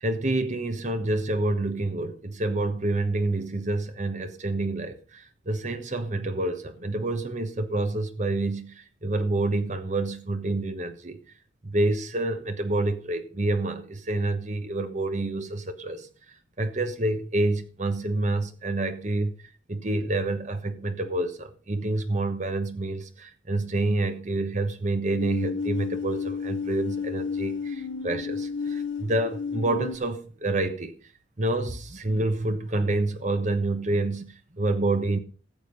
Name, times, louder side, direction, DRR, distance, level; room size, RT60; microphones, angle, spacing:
voice 1, 0.0-11.2 11.6-16.1 16.6-19.3 19.7-30.9 31.4-35.2, right 2 dB, 40° right, 1.2 m, -28 dB
sound 1, 25.1-30.0, left 5 dB, 70° left, 0.7 m, -32 dB
14.5 x 7.2 x 5.4 m
head